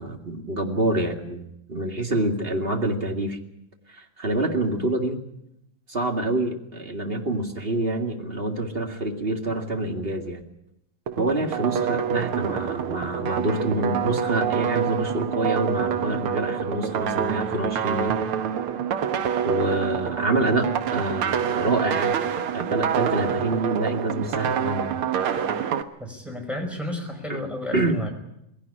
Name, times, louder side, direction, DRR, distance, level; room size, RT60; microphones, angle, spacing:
voice 1, 0.0-3.4 3.9-5.2 5.9-10.4 11.2-18.2 19.4-22.2 22.5-25.0 27.3-27.4 27.7-28.0, right 1 dB, 20° right, 3 dB, 1.7 m, -27 dB
sound 1, 11.1-25.8, right 8 dB, 70° right, 1.3 m, -26 dB
voice 2, 26.0-28.1, left 1 dB, ahead, 2 dB, 4.8 m, -32 dB
20.5 x 17.5 x 10.0 m, 0.81 s
omnidirectional pair, 3.9 m